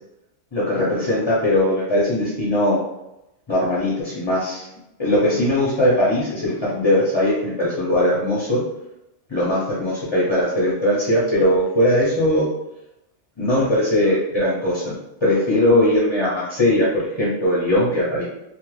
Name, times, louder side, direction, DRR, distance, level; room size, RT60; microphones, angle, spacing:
voice 1, 0.5-2.8 3.5-4.7 5.0-8.6 9.3-12.5 13.4-18.2, left 1 dB, 30° left, -7 dB, 0.5 m, -20 dB
2.4 x 2.1 x 3.1 m, 0.87 s
omnidirectional pair, 1.3 m